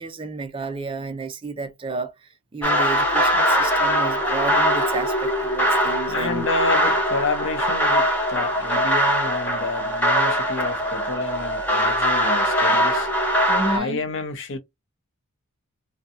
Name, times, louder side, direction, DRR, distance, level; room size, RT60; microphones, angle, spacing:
voice 1, 0.0-6.5 13.5-14.0, right 3 dB, 25° right, 0.4 m, -31 dB
sound 1, 2.6-13.8, equal, 10° left, 0.8 m, -21 dB
voice 2, 6.1-13.1 13.7-14.6, left 3 dB, 55° left, 0.6 m, -29 dB
2.6 x 2.2 x 2.5 m
head